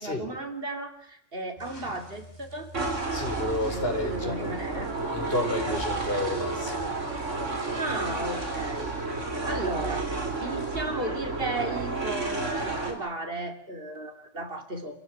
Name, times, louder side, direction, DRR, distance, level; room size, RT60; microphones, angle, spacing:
voice 1, 0.0-2.7 3.7-4.9 7.7-8.9 9.5-15.0, right 2 dB, 50° right, 6 dB, 3.3 m, -35 dB
sound 1, 1.6-10.9, right 2 dB, 35° left, 6.9 m, -48 dB
sound 2, 2.7-12.9, right 3 dB, 75° right, 4.4 m, -31 dB
voice 2, 3.1-4.6 5.1-6.9, left 1 dB, 50° left, 4 dB, 4.4 m, -31 dB
27.5 x 16.0 x 9.3 m, 0.71 s
omnidirectional pair, 1.3 m